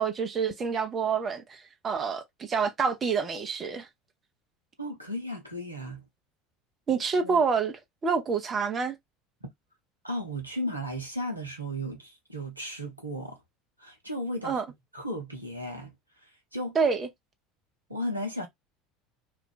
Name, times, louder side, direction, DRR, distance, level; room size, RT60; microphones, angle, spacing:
voice 1, 0.0-3.9 6.9-8.9 14.4-14.6 16.7-17.1, right 5 dB, 30° right, 0.8 m, -27 dB
voice 2, 4.8-6.0 7.2-7.4 9.4-9.5 10.0-13.4 13.8-14.6 14.9-15.9 16.5-16.8 17.9-18.5, equal, 90° right, 0.8 m, -35 dB
2.6 x 2.3 x 3.7 m
figure-of-eight pair, 70°, 0 cm